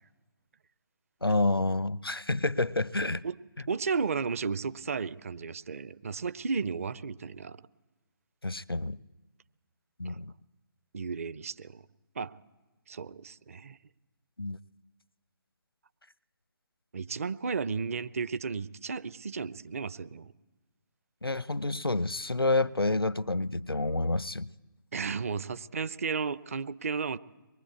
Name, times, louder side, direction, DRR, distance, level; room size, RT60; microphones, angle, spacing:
voice 1, 1.2-3.2 8.4-9.0 10.0-10.3 14.4-14.6 21.2-24.5, left 2 dB, 85° left, 0.7 m, -29 dB
voice 2, 3.7-7.6 10.0-10.2 10.9-11.8 12.2-12.3 12.9-13.8 16.9-20.3 24.9-27.2, right 5 dB, 40° right, 0.8 m, -33 dB
23.5 x 22.0 x 8.4 m
figure-of-eight pair, 145°, 12 cm